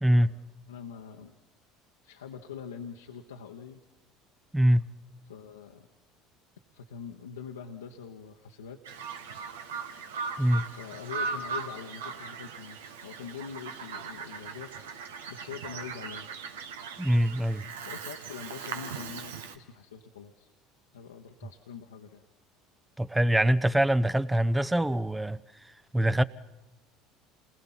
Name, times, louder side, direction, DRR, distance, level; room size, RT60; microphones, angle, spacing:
voice 1, 0.0-0.3 4.5-4.8 10.4-10.7 17.0-17.6 23.0-25.4 25.9-26.2, right 1 dB, 10° right, 0.7 m, -23 dB
voice 2, 0.7-1.3 2.0-3.8 5.3-5.9 6.7-8.8 10.8-14.8 15.3-16.3 17.9-20.5 20.9-22.2, left 7 dB, 80° left, 1.1 m, -44 dB
Bird vocalization bird call bird song, 8.9-19.6, right 5 dB, 75° right, 1.3 m, -39 dB
28.5 x 20.5 x 5.8 m
figure-of-eight pair, 65°, 0 cm